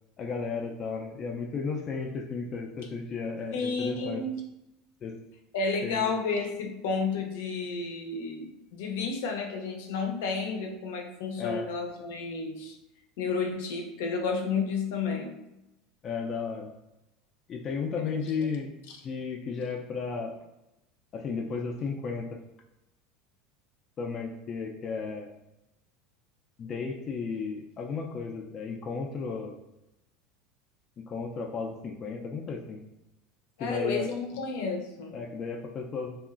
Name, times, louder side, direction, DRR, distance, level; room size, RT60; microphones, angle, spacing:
voice 1, 0.2-4.2 5.0-5.2 5.8-6.1 11.4-11.7 16.0-16.7 17.5-18.7 19.0-20.3 21.1-22.4 24.0-25.4 26.6-29.6 31.0-32.8 33.6-34.1 35.1-36.2, left 5 dB, 35° left, 1 dB, 0.3 m, -34 dB
voice 2, 3.5-4.3 5.5-8.5 8.7-12.8 13.2-15.3 18.0-18.3 33.6-35.2, left 4 dB, 80° left, 2 dB, 0.5 m, -31 dB
2.8 x 2.4 x 2.4 m, 0.91 s
supercardioid pair, 130°, 0 cm